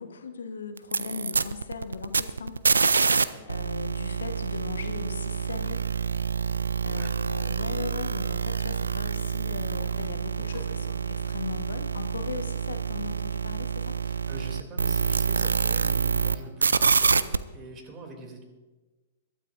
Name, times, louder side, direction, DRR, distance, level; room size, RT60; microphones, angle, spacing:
voice 1, 0.0-2.6 3.4-5.8 6.8-14.0, left 5 dB, 75° left, 7 dB, 1.3 m, -38 dB
sound 1, 0.8-3.2 3.5-16.4 16.6-17.4, right 5 dB, 80° right, 0.5 m, -27 dB
voice 2, 3.3-3.6 7.0-7.2 10.5-10.9 14.0-18.4, right 1 dB, 25° right, 3 dB, 2.9 m, -44 dB
23.0 x 12.5 x 2.6 m, 1.2 s
figure-of-eight pair, 110°, 0 cm